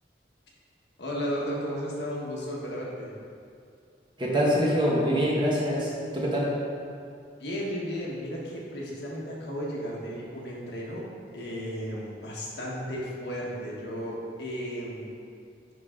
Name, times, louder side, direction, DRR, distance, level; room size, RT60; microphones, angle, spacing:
voice 1, 1.0-3.1 7.4-15.1, equal, 70° left, -4 dB, 1.4 m, -34 dB
voice 2, 4.2-6.5, equal, 25° right, -4 dB, 1.2 m, -25 dB
10.5 x 3.9 x 3.8 m, 2.4 s
head